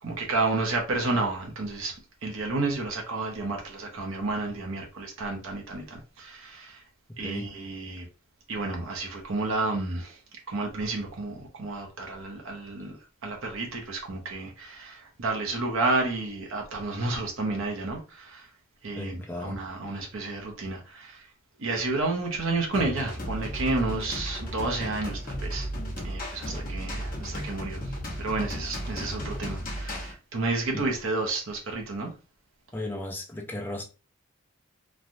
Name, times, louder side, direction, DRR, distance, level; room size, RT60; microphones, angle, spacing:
voice 1, 0.0-6.8 7.2-8.1 8.5-10.2 10.5-13.0 13.2-18.5 18.8-21.3 21.6-25.7 26.0-32.1, right 3 dB, 65° right, 0.8 m, -31 dB
voice 2, 19.0-19.6 26.5-26.7 30.7-30.8 32.7-33.8, left 1 dB, 10° left, 0.4 m, -35 dB
sound 1, 22.7-30.1, equal, 40° left, 0.9 m, -34 dB
3.2 x 2.3 x 2.6 m
head